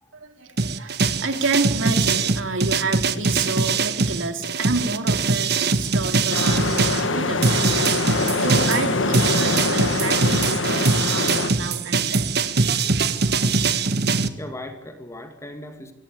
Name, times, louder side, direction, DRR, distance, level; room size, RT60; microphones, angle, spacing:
voice 1, 0.1-12.3, right 3 dB, 90° right, 6 dB, 3.3 m, -29 dB
sound 1, 0.6-7.0 7.4-14.3, right 4 dB, 55° right, 1.4 m, -22 dB
sound 2, 6.3-11.5, left 3 dB, 80° left, 1.9 m, -24 dB
voice 2, 14.4-15.9, left 1 dB, 15° left, 5 dB, 2.3 m, -38 dB
26.0 x 17.5 x 9.0 m, 1.0 s
head